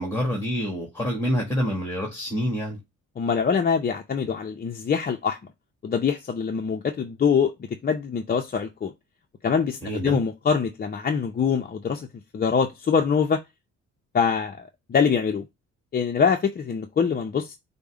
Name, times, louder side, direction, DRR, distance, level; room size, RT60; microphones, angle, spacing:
voice 1, 0.0-2.8 9.8-10.2, equal, 10° left, 1.5 m, -27 dB
voice 2, 3.2-5.4 5.8-8.9 9.4-12.1 12.3-13.4 14.1-15.5 15.9-17.6, left 6 dB, 30° left, 0.5 m, -24 dB
5.2 x 2.1 x 4.6 m
cardioid pair, 90°, 30 cm